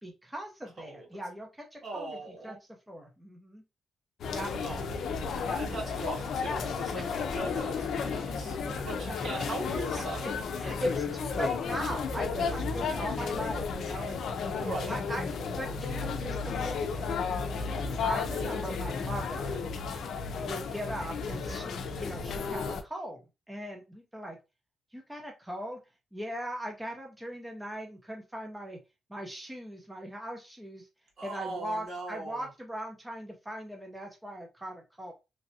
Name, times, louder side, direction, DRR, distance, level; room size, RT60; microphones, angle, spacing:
voice 1, 0.0-2.2 2.4-2.6 2.9-3.6 4.3-4.5 5.4-5.6 7.0-7.2 8.8-9.2 10.6-14.3 14.9-15.3 15.6-17.1 18.0-19.7 20.4-24.4 24.9-25.8 26.1-28.8 29.1-30.9 31.2-35.1, equal, 10° right, 0.6 m, -39 dB
voice 2, 1.8-2.6 4.6-5.0 5.6-8.6 8.8-10.4 14.4-14.9 31.2-32.5, right 2 dB, 60° right, 1.7 m, -39 dB
sound 1, 4.2-22.8, left 5 dB, 75° left, 0.5 m, -33 dB
3.1 x 2.6 x 2.6 m
cardioid pair, 105°, 0 cm